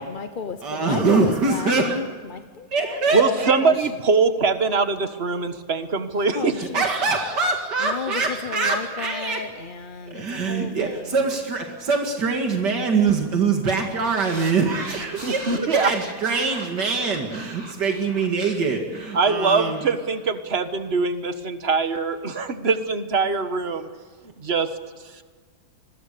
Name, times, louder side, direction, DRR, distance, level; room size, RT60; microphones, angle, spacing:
voice 1, 0.0-3.9 6.3-6.8 7.8-11.2, left 6 dB, 40° left, 8 dB, 0.8 m, -33 dB
voice 2, 0.6-2.0 2.7-3.6 6.6-9.4 10.1-19.8, right 4 dB, 85° right, 2 dB, 2.7 m, -23 dB
voice 3, 3.1-6.5 15.2-15.9 19.1-23.9 24.4-24.7 25.2-25.3, right 4 dB, 40° right, 9 dB, 1.6 m, -22 dB
sound 1, 14.1-20.6, right 1 dB, 25° right, 2.9 m, -40 dB
27.0 x 21.5 x 6.8 m, 1.5 s
omnidirectional pair, 1.8 m